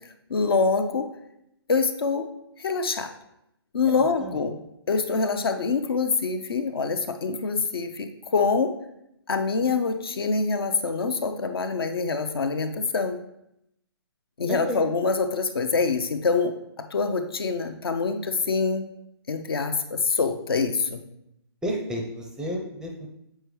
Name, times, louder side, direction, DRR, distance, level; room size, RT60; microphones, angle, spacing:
voice 1, 0.3-1.1 1.7-2.3 2.6-3.1 3.7-4.6 4.9-8.7 9.3-13.2 14.4-16.5 16.9-18.8 19.3-21.0, left 4 dB, 60° left, 7 dB, 0.6 m, -25 dB
voice 2, 3.8-4.4 14.5-14.8 21.6-23.1, equal, 5° right, 0 dB, 0.5 m, -31 dB
7.5 x 4.6 x 3.2 m, 0.81 s
figure-of-eight pair, 135°, 14 cm